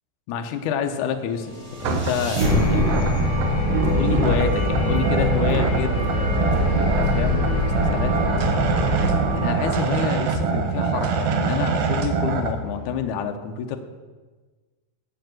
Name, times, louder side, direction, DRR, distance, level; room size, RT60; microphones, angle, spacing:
voice 1, 0.3-1.6 1.8-3.1 3.8-8.5 9.3-13.8, left 7 dB, 75° left, 5 dB, 1.9 m, -28 dB
sound 1, 1.4-10.5, left 1 dB, 15° right, 1.2 m, -23 dB
sound 2, 1.8-12.5, right 6 dB, 70° right, 2.3 m, -25 dB
sound 3, 5.8-13.1, left 3 dB, 35° left, 1.8 m, -39 dB
9.2 x 7.7 x 7.7 m, 1.3 s
omnidirectional pair, 4.4 m